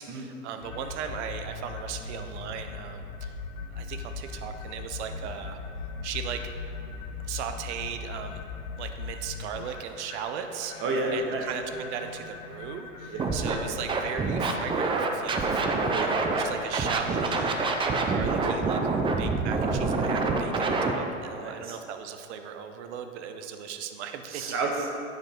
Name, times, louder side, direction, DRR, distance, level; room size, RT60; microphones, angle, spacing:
voice 1, 0.0-3.3 3.7-5.6 6.0-6.5 7.2-8.4 8.8-10.7 11.1-17.8 18.1-24.5, right 8 dB, 60° right, 7 dB, 0.7 m, -37 dB
sound 1, 0.6-17.9, left 4 dB, 80° left, 0.7 m, -40 dB
voice 2, 10.8-11.4 15.9-16.1 21.4-21.8 24.3-24.9, right 3 dB, 35° right, 0 dB, 1.2 m, -30 dB
Scratching (performance technique), 13.2-13.5 13.9-16.4 16.7-20.9, right 3 dB, 15° right, 0.5 m, -26 dB
9.3 x 4.9 x 3.7 m, 2.7 s
hypercardioid pair, 90°, 38 cm